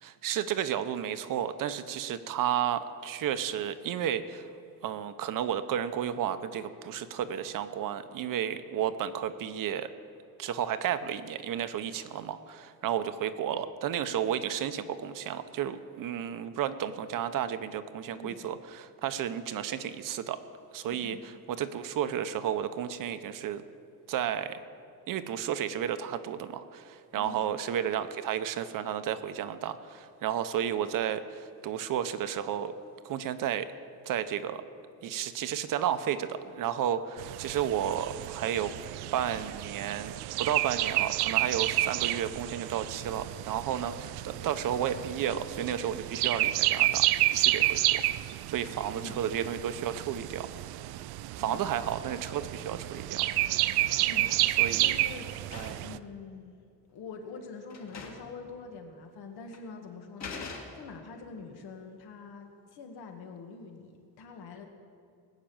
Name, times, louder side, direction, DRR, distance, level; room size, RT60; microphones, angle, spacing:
voice 1, 0.0-4.5 4.8-9.9 10.4-20.4 20.7-23.6 24.1-24.6 25.1-32.7 33.0-33.7 34.1-34.6 35.0-38.7 39.1-40.1 40.4-50.5 51.4-53.3 54.6-54.9 55.5-55.8, right 9 dB, 60° right, 11 dB, 0.8 m, -32 dB
voice 2, 20.8-21.2 27.2-27.4 48.9-49.2 51.4-51.6 54.0-54.6 54.8-55.3 55.8-56.6 56.9-64.7, left 4 dB, 80° left, 3 dB, 2.1 m, -45 dB
sound 1, 37.2-56.0, right 16 dB, 85° right, 0.5 m, -30 dB
sound 2, 53.8-54.3 54.6-56.0 56.9-57.0 57.4-57.5 57.7-58.4 58.6-58.7 59.5-59.7 60.2-61.1, left 4 dB, 45° left, 2.0 m, -44 dB
19.5 x 6.7 x 8.9 m, 2.4 s
cardioid pair, 170°, 38 cm